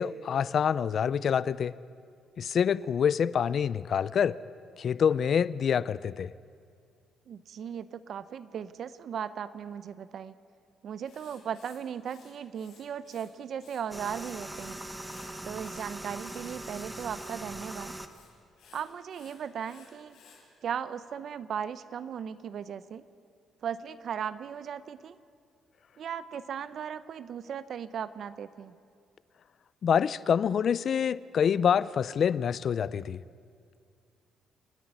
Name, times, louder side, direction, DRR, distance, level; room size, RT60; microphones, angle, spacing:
voice 1, 0.0-1.7 2.4-4.4 4.8-6.3 29.8-33.2, left 7 dB, 45° left, 18 dB, 0.4 m, -26 dB
voice 2, 7.3-10.3 10.8-14.8 15.4-17.9 18.7-20.2 20.6-23.0 23.6-25.2 26.0-28.8, right 8 dB, 50° right, 15 dB, 0.6 m, -37 dB
Writing, 11.0-13.3 13.5-14.8 15.0-20.4, left 6 dB, 85° left, 5.6 m, -58 dB
sound 1, 13.9-18.1, right 1 dB, 5° right, 1.0 m, -41 dB
28.5 x 10.0 x 9.7 m, 2.3 s
cardioid pair, 155°, 0 cm